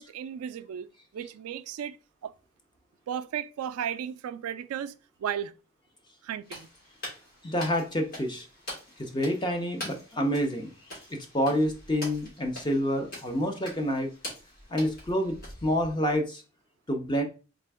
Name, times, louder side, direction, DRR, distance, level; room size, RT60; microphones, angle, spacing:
voice 1, 0.0-2.0 2.2-2.3 3.1-5.5 6.2-6.7, right 9 dB, 90° right, 0.3 m, -35 dB
sound 1, 6.4-16.2, left 1 dB, 45° left, 2.1 m, -44 dB
voice 2, 7.4-8.5 9.0-10.7 11.1-14.1 14.7-15.4 15.6-16.4 16.9-17.2, equal, 20° left, 0.6 m, -28 dB
3.6 x 3.3 x 3.4 m
head